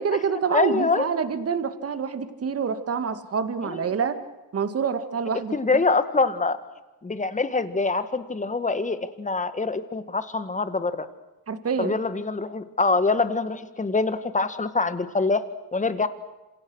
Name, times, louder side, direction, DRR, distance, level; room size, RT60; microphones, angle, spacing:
voice 1, 0.0-4.2 4.5-5.8 11.5-11.9, right 6 dB, 40° right, 10 dB, 2.1 m, -27 dB
voice 2, 0.5-1.1 3.6-3.8 5.5-6.6 7.0-11.1 11.8-15.4 15.7-16.1, left 3 dB, 20° left, 11 dB, 1.9 m, -24 dB
27.0 x 27.0 x 6.4 m, 1.1 s
cardioid pair, 100°, 37 cm